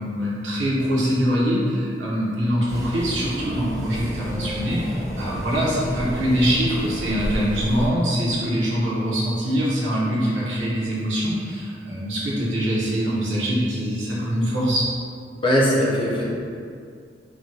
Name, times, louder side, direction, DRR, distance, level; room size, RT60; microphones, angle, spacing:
voice 1, 0.0-14.8, equal, 80° right, -7 dB, 0.8 m, -23 dB
sound 1, 2.7-7.9, equal, 20° right, 0.6 m, -31 dB
voice 2, 15.4-16.2, equal, 30° left, -6 dB, 0.5 m, -19 dB
3.2 x 2.2 x 2.7 m, 2.3 s
head